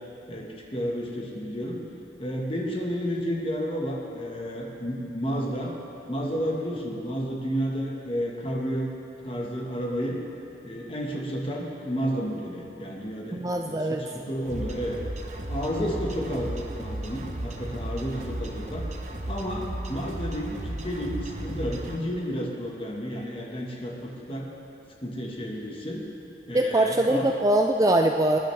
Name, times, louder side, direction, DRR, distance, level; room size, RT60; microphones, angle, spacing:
voice 1, 0.3-1.8 2.2-5.7 6.1-8.9 9.2-10.2 10.6-15.0 15.5-18.9 19.3-24.5 25.0-26.0 26.5-27.3, equal, 30° left, -2 dB, 1.4 m, -31 dB
voice 2, 13.3-14.0 26.5-28.4, right 1 dB, 20° right, 4 dB, 0.3 m, -22 dB
sound 1, 14.5-22.0, right 1 dB, 40° right, 0.9 m, -35 dB
19.0 x 10.5 x 3.4 m, 2.8 s
head